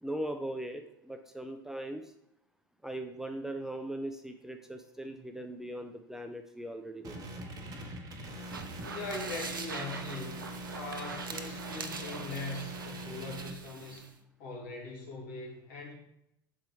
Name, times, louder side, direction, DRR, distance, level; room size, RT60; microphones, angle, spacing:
voice 1, 0.0-2.0 2.8-7.2, right 1 dB, 5° right, 6 dB, 0.5 m, -39 dB
sound 1, 7.0-13.5, right 1 dB, 35° right, 1.0 m, -43 dB
sound 2, 8.3-14.1, right 4 dB, 85° right, 0.5 m, -43 dB
voice 2, 8.8-10.4 10.7-14.0 14.4-15.9, left 3 dB, 65° left, -2 dB, 1.8 m, -41 dB
6.2 x 4.3 x 3.5 m, 0.78 s
figure-of-eight pair, 75°, 11 cm